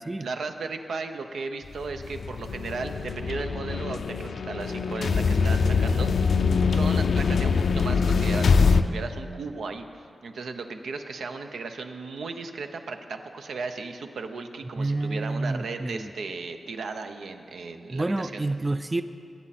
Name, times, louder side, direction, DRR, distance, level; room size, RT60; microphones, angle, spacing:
voice 1, 0.2-6.3 6.7-18.4, right 4 dB, 85° right, 6 dB, 0.8 m, -36 dB
sound 1, 1.8-8.8, left 5 dB, 70° left, 0.5 m, -23 dB
voice 2, 14.8-16.1 17.9-19.0, right 2 dB, 20° right, 11 dB, 0.4 m, -28 dB
22.0 x 8.9 x 4.2 m, 2.5 s
wide cardioid pair, 100°, 0 cm